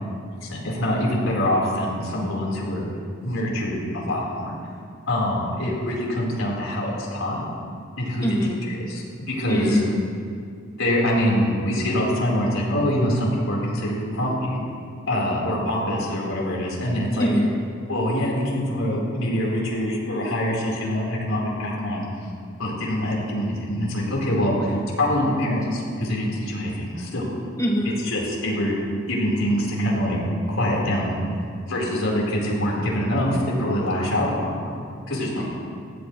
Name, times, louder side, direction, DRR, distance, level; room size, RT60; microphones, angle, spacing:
voice 1, 0.4-2.9 3.2-4.5 5.1-7.4 8.0-8.3 8.7-9.8 10.8-14.5 15.1-17.3 17.9-22.1 22.6-27.2 28.0-28.8 29.1-30.2 30.5-31.2 31.7-34.7 35.1-35.4, left 1 dB, 85° left, -4 dB, 4.4 m, -24 dB
voice 2, 8.2-8.6 9.4-10.0 17.2-17.5 27.6-27.9, equal, 15° left, -4 dB, 2.8 m, -22 dB
20.0 x 16.5 x 3.3 m, 2.3 s
head